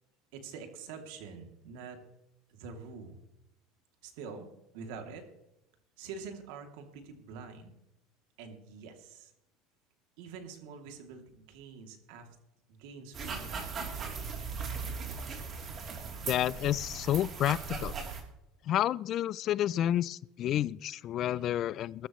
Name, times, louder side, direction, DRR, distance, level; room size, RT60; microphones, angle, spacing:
voice 1, 0.3-2.0 2.5-3.2 4.0-5.3 6.0-7.7 8.4-9.3 10.2-12.3 12.7-14.4 21.4-21.5, right 5 dB, 75° right, 4 dB, 2.7 m, -46 dB
sound 1, 13.1-18.2, right 5 dB, 35° right, 3.2 m, -38 dB
voice 2, 16.3-17.9 18.6-22.1, left 12 dB, 45° left, 22 dB, 0.4 m, -30 dB
21.0 x 13.0 x 3.1 m, 0.91 s
supercardioid pair, 125°, 0 cm